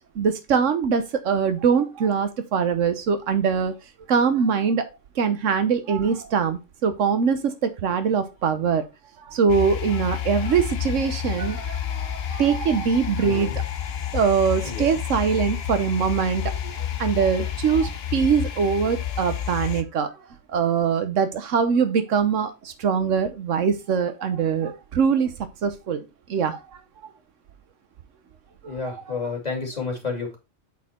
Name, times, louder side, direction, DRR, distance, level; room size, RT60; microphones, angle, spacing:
voice 1, 0.1-3.7 4.1-4.9 5.2-8.8 9.2-13.5 14.1-16.7 17.0-20.1 20.5-25.3 25.6-26.8 28.6-28.7, right 6 dB, 85° right, 9 dB, 1.2 m, -23 dB
sound 1, 9.5-19.8, left 10 dB, 60° left, 1.0 m, -30 dB
voice 2, 13.2-13.6 14.6-14.9 28.7-30.4, left 4 dB, 35° left, 0 dB, 2.7 m, -30 dB
8.1 x 4.3 x 4.2 m, 0.26 s
omnidirectional pair, 1.2 m